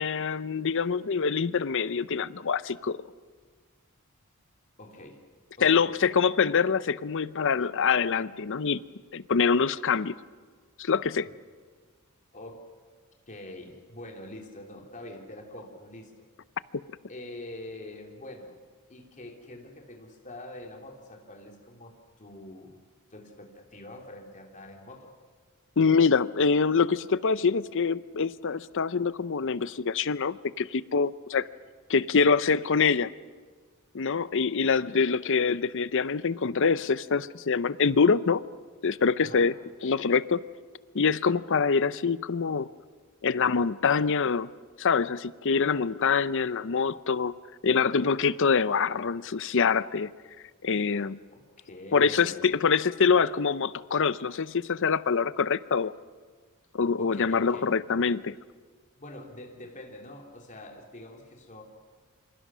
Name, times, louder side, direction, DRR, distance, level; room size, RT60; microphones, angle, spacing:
voice 1, 0.0-3.0 5.6-8.8 9.1-10.1 10.8-11.3 25.8-31.5 31.9-33.1 33.9-38.4 38.8-39.5 39.8-40.4 40.9-42.7 43.2-44.5 44.8-47.3 47.6-50.1 50.6-51.2 51.9-55.9 56.7-58.3, left 5 dB, 60° left, 16 dB, 0.7 m, -25 dB
voice 2, 4.8-5.2 5.6-6.2 11.2-11.3 12.3-12.6 13.3-16.3 17.1-18.5 18.9-22.8 23.1-25.1 39.2-39.5 51.3-52.8 57.0-57.7 59.0-61.6, left 1 dB, 35° left, 2 dB, 3.2 m, -45 dB
27.5 x 25.5 x 6.2 m, 1.5 s
head